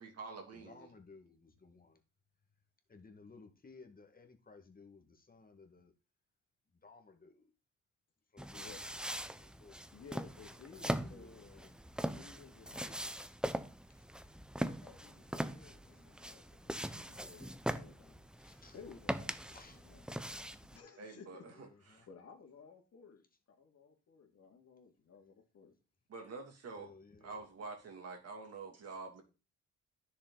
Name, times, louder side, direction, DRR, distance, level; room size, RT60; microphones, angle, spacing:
voice 1, 0.0-0.9 21.0-21.7 21.9-22.0 26.1-26.9 27.2-29.2, right 4 dB, 55° right, 3 dB, 2.6 m, -47 dB
voice 2, 0.5-2.0 2.9-5.9 6.8-7.5 8.3-9.0 9.4-9.8 10.9-12.0 13.9-14.0 15.3-15.5 18.4-18.8 19.5-19.8 21.5-22.1 26.8-27.4, left 4 dB, 30° left, 5 dB, 1.8 m, -58 dB
sound 1, 8.4-20.8, right 1 dB, 5° right, 0.7 m, -41 dB
voice 3, 8.5-8.9 9.9-11.7 12.1-13.2 14.6-25.8, left 5 dB, 55° left, 3 dB, 2.5 m, -57 dB
10.0 x 6.8 x 4.0 m, 0.31 s
cardioid pair, 90°, 30 cm